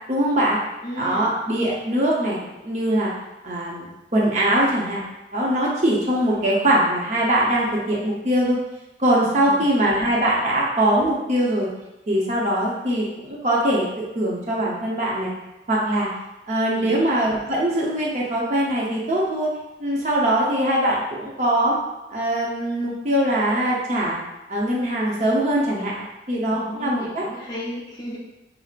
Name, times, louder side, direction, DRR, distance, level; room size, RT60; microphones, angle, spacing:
voice 1, 0.1-0.6 1.0-3.1 3.4-5.0 5.3-8.6 9.0-11.7 12.1-15.3 15.7-16.1 16.5-19.5 19.8-21.8 22.1-24.2 24.5-27.2, right 1 dB, 40° right, -5 dB, 0.7 m, -22 dB
voice 2, 0.8-1.4 9.2-9.7 16.7-17.0 26.5-28.2, equal, 25° left, -5 dB, 0.7 m, -34 dB
5.8 x 2.1 x 2.4 m, 0.98 s
head